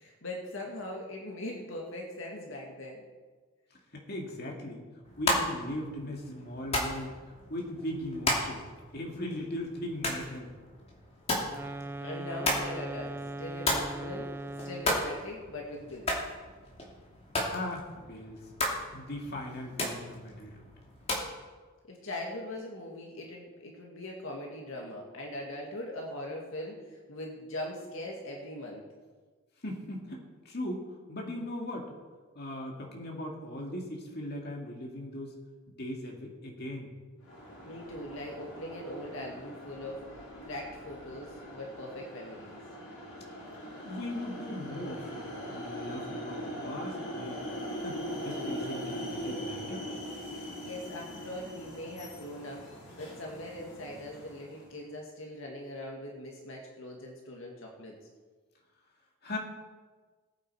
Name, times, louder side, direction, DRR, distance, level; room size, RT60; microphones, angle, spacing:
voice 1, 0.0-3.0 6.0-6.4 12.0-14.3 14.6-16.1 21.8-28.8 37.7-40.0 40.4-42.6 50.4-57.9, left 1 dB, 60° left, -1 dB, 1.9 m, -41 dB
voice 2, 3.9-4.8 5.2-7.1 7.5-8.6 8.9-10.5 17.5-18.4 18.9-20.5 29.6-31.9 32.4-35.3 35.7-36.9 43.8-47.4 47.8-49.9 59.2-59.4, left 1 dB, 45° left, 0 dB, 2.2 m, -39 dB
sound 1, 5.0-21.3, left 1 dB, 25° left, 2.7 m, -35 dB
sound 2, 11.4-15.1, right 2 dB, 10° right, 0.4 m, -39 dB
sound 3, 37.2-54.7, equal, 90° left, 5.1 m, -41 dB
19.5 x 8.6 x 4.8 m, 1.4 s
head